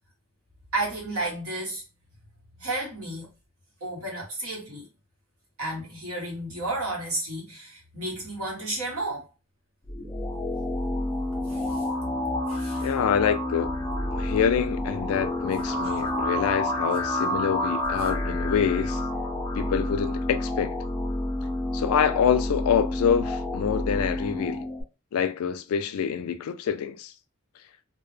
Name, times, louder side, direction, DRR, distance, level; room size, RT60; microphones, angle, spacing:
voice 1, 0.7-1.8 2.6-3.3 3.8-4.9 5.6-9.3 11.5-11.8 12.5-12.9, right 2 dB, 80° right, 1.2 m, -32 dB
sound 1, 9.8-24.8, left 1 dB, 15° left, 0.5 m, -29 dB
voice 2, 12.8-13.8 14.1-19.0 19.5-20.8 21.7-24.7 25.1-27.1, left 7 dB, 80° left, 0.3 m, -26 dB
2.2 x 2.0 x 3.1 m
head